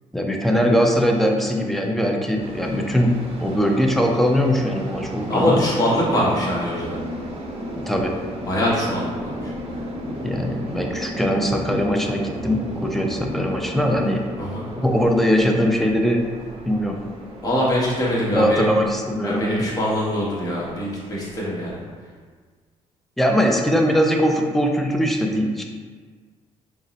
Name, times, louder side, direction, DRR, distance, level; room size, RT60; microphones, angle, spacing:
voice 1, 0.1-5.6 7.7-8.1 10.2-14.2 14.8-16.3 16.7-17.0 18.3-19.6 23.2-25.6, equal, ahead, 1 dB, 0.4 m, -21 dB
sound 1, 2.4-21.9, equal, 50° right, 0.8 m, -35 dB
voice 2, 5.3-7.0 8.5-9.5 14.4-14.6 17.4-18.7 19.2-21.8, left 1 dB, 30° left, -6 dB, 1.1 m, -23 dB
3.6 x 2.0 x 4.0 m, 1.5 s
cardioid pair, 115°, 13 cm